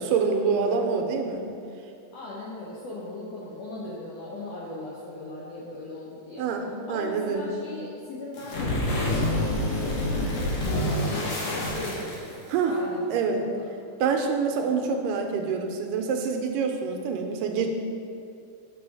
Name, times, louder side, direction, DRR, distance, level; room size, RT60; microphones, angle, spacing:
voice 1, 0.0-1.4 6.4-7.6 12.5-12.8 13.1-13.4 14.0-17.7, right 5 dB, 85° right, 4 dB, 2.3 m, -26 dB
voice 2, 2.1-6.4 6.9-13.7, left 2 dB, 75° left, -5 dB, 1.5 m, -38 dB
sound 1, 8.3-12.6, left 1 dB, 60° left, 1.8 m, -27 dB
6.2 x 4.9 x 4.6 m, 2.5 s
omnidirectional pair, 3.8 m